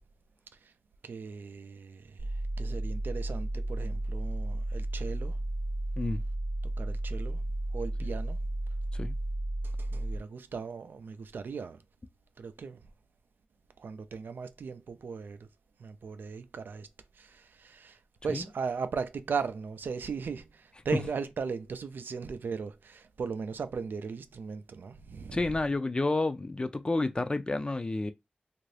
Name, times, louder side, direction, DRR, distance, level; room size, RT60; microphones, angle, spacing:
voice 1, 1.0-5.4 6.6-7.4 7.7-8.4 9.6-11.8 12.4-12.8 13.8-15.5 15.8-16.9 17.1-25.6, right 5 dB, 85° right, 0.4 m, -38 dB
sound 1, 2.2-10.2, right 1 dB, 40° right, 0.6 m, -33 dB
voice 2, 25.3-28.1, left 2 dB, 30° left, 0.4 m, -30 dB
2.7 x 2.5 x 3.2 m
wide cardioid pair, 65°, 3 cm